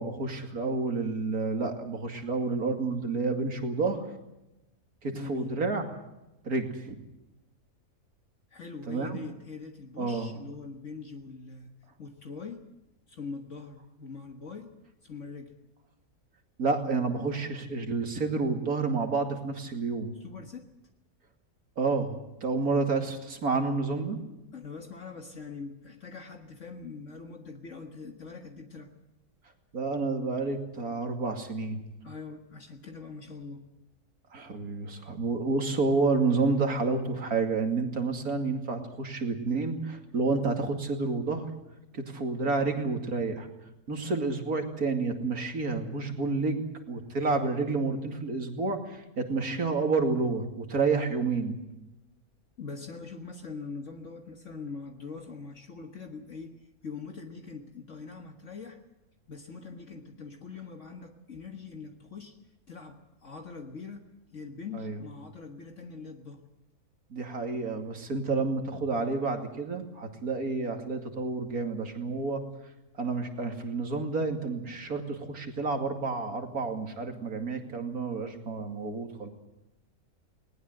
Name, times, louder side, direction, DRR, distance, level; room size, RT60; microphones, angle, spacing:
voice 1, 0.0-4.0 5.0-6.0 6.4-7.0 8.9-9.2 10.0-10.3 16.6-20.1 21.8-22.2 22.4-24.2 29.7-31.8 34.3-41.5 41.9-43.5 43.9-51.6 64.7-65.0 67.1-72.4 73.0-79.3, right 3 dB, 75° right, 5 dB, 2.9 m, -29 dB
voice 2, 5.1-5.5 8.5-11.7 12.0-12.6 13.1-14.7 15.0-15.5 20.2-20.7 24.5-28.9 32.0-33.6 52.6-56.6 56.8-58.8 59.3-62.4 62.7-64.0 64.3-66.4, left 4 dB, 55° left, 4 dB, 1.9 m, -43 dB
20.0 x 19.5 x 7.9 m, 0.94 s
omnidirectional pair, 1.6 m